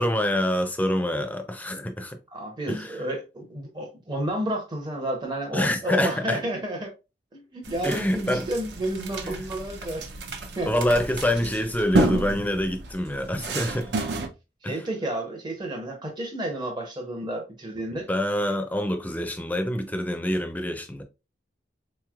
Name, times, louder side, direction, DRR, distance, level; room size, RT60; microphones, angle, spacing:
voice 1, 0.0-2.2 2.7-3.0 5.5-6.4 7.8-8.5 9.2-9.4 10.7-13.9 14.6-14.8 17.9-21.0, left 1 dB, 10° left, 0.5 m, -26 dB
voice 2, 2.3-6.9 7.3-10.1 10.6-10.7 14.7-18.1, right 1 dB, 25° right, 0.8 m, -31 dB
sound 1, 7.6-14.3, right 2 dB, 70° right, 0.7 m, -31 dB
3.9 x 3.1 x 2.4 m
head